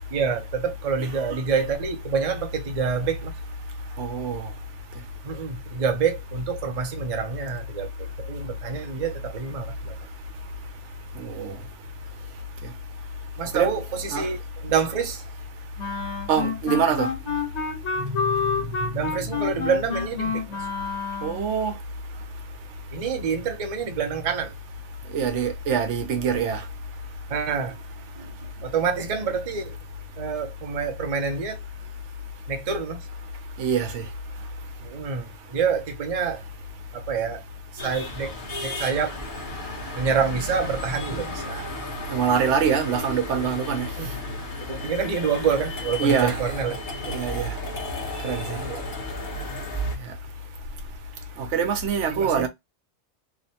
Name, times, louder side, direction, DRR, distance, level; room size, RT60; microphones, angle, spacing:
voice 1, 0.1-3.3 5.2-9.9 13.4-15.3 17.9-20.7 22.9-24.5 27.3-27.8 28.2-29.8 30.2-31.6 32.5-33.1 34.8-36.4 36.9-37.4 37.7-38.3 38.6-39.2 39.9-41.7 44.0-44.1 44.6-46.8 48.6-48.9 52.1-52.5, right 6 dB, 45° right, 0.5 m, -27 dB
voice 2, 4.0-4.5 11.2-11.5 13.5-13.8 14.1-14.3 16.3-17.1 21.2-21.7 25.1-26.6 33.6-34.0 42.1-43.9 46.0-46.4 47.1-47.5 48.2-48.4 51.5-52.5, right 6 dB, 80° right, 0.9 m, -24 dB
Wind instrument woodwind instrument, 15.8-21.5, left 5 dB, 70° left, 1.3 m, -28 dB
sound 1, 37.8-50.0, left 1 dB, 45° left, 1.0 m, -34 dB
2.9 x 2.1 x 2.7 m
omnidirectional pair, 1.2 m